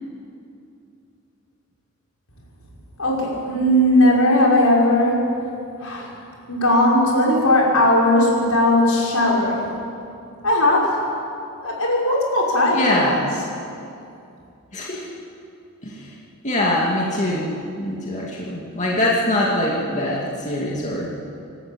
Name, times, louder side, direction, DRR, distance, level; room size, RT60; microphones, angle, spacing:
voice 1, 3.0-5.3 5.8-6.1 6.5-9.8 10.4-11.0 11.6-13.3, left 1 dB, 75° left, -3 dB, 5.7 m, -18 dB
voice 2, 12.7-13.3 14.7-15.1 15.8-16.1 16.4-21.1, left 1 dB, 35° left, -4 dB, 2.6 m, -23 dB
28.0 x 12.5 x 8.9 m, 2.6 s
head